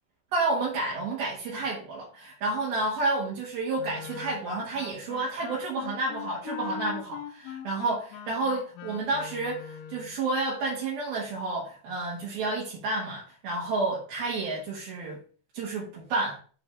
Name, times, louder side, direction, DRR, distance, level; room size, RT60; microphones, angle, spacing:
voice 1, 0.3-15.2 15.5-16.4, right 3 dB, 70° right, 3.6 m, -30 dB
Wind instrument woodwind instrument, 3.8-10.2, left 10 dB, 80° left, 1.9 m, -41 dB
10.0 x 4.2 x 3.4 m
omnidirectional pair, 4.5 m